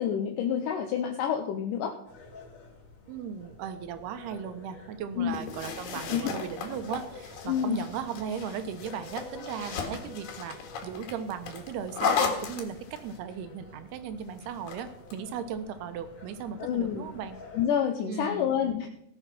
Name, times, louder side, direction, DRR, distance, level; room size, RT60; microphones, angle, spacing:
voice 1, 0.0-1.9 5.2-5.4 5.9-6.3 7.5-7.8 16.6-17.0 17.5-18.9, left 8 dB, 70° left, 4 dB, 2.2 m, -28 dB
sound 1, 2.1-17.7, left 3 dB, 45° left, 4.1 m, -50 dB
voice 2, 3.1-10.6 10.8-17.4 18.0-18.7, right 7 dB, 90° right, 10 dB, 3.1 m, -37 dB
sound 2, 5.3-13.2 14.4-15.2, left 6 dB, 85° left, 3.7 m, -35 dB
17.5 x 7.3 x 5.9 m, 0.76 s
omnidirectional pair, 4.5 m